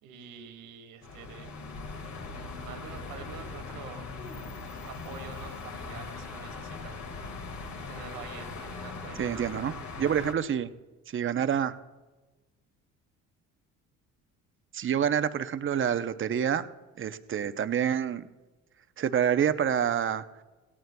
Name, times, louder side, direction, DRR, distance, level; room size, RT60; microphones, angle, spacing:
voice 1, 0.0-1.6 2.3-4.2 4.9-7.0 7.7-9.5, right 7 dB, 85° right, 4 dB, 2.0 m, -46 dB
sound 1, 1.0-10.3, left 4 dB, 55° left, 1.9 m, -40 dB
voice 2, 9.2-10.7 11.1-11.7 14.7-16.7 17.0-18.3 19.0-20.2, right 8 dB, 35° right, 11 dB, 0.7 m, -27 dB
17.0 x 17.0 x 2.2 m, 1.2 s
supercardioid pair, 85°, 34 cm